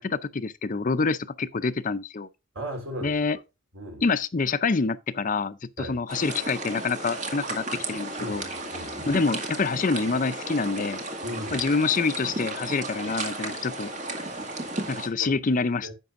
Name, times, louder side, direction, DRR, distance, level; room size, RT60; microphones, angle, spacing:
voice 1, 0.0-2.3 3.0-3.4 4.0-8.4 9.1-11.0 11.5-13.9 14.9-15.9, left 4 dB, 40° left, 0.5 m, -26 dB
voice 2, 2.5-3.2 3.7-4.0 5.8-6.0 8.2-9.2 11.2-11.7 15.8-15.9, equal, 70° right, 3.9 m, -36 dB
sound 1, 6.1-15.1, right 2 dB, 35° right, 2.1 m, -34 dB
11.0 x 7.8 x 2.5 m
head